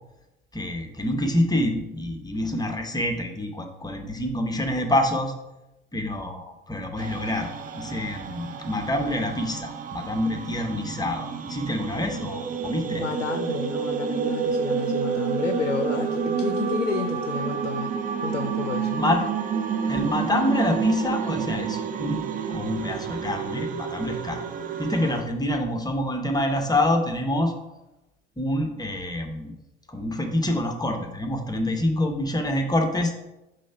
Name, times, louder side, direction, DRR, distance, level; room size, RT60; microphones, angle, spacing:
voice 1, 0.5-5.3 5.9-7.5 7.7-13.1 18.7-19.2 19.9-24.4 24.8-27.5 28.4-29.5 29.9-33.1, left 1 dB, 10° left, 4 dB, 0.9 m, -26 dB
sound 1, 7.0-25.2, right 6 dB, 25° right, 0.5 m, -29 dB
voice 2, 12.9-18.0 18.2-19.0, left 5 dB, 90° left, 7 dB, 0.5 m, -31 dB
5.3 x 3.4 x 5.5 m, 0.97 s
figure-of-eight pair, 70°, 36 cm